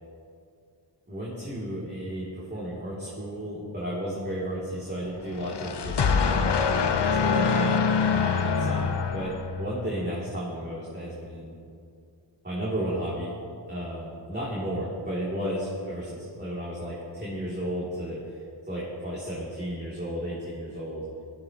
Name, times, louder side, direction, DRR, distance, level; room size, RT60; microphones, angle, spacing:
voice 1, 1.1-6.2 7.2-11.5 12.4-13.4 13.7-18.4 18.7-21.0, equal, 25° right, -8 dB, 3.2 m, -33 dB
sound 1, 5.3-9.9, left 5 dB, 65° left, 0.9 m, -25 dB
19.0 x 12.0 x 3.1 m, 2.3 s
wide cardioid pair, 85°, 44 cm